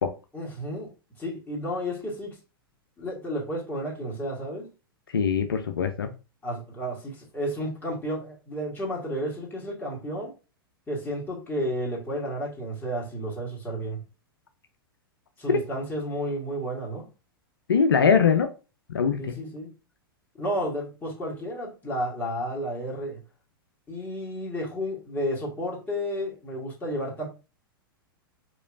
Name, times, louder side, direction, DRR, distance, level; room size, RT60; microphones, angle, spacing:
voice 1, 0.3-0.9 1.2-2.4 3.0-4.7 6.4-10.3 10.9-14.0 15.4-17.1 19.2-19.7 20.3-23.2 23.9-27.3, equal, 15° left, 2.0 m, -32 dB
voice 2, 5.1-6.1 15.5-15.6 17.7-18.5 18.9-19.3, left 6 dB, 75° left, 0.5 m, -22 dB
4.9 x 3.1 x 2.5 m
figure-of-eight pair, 100°, 12 cm